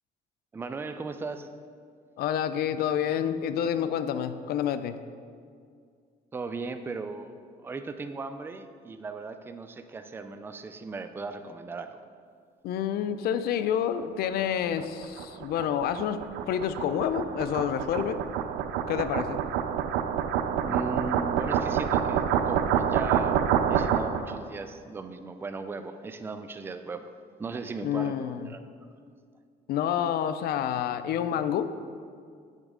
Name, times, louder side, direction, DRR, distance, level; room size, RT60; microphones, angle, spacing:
voice 1, 0.5-1.5 6.3-12.0 20.6-27.1 27.4-28.9, right 4 dB, 15° right, 8 dB, 0.3 m, -37 dB
voice 2, 2.2-5.0 12.6-18.2 18.9-19.4 27.8-28.5 29.7-31.7, left 9 dB, 65° left, 11 dB, 0.4 m, -28 dB
sound 1, 14.4-24.4, right 8 dB, 85° right, 0.4 m, -28 dB
8.1 x 5.0 x 3.7 m, 2.2 s
cardioid pair, 110°, 17 cm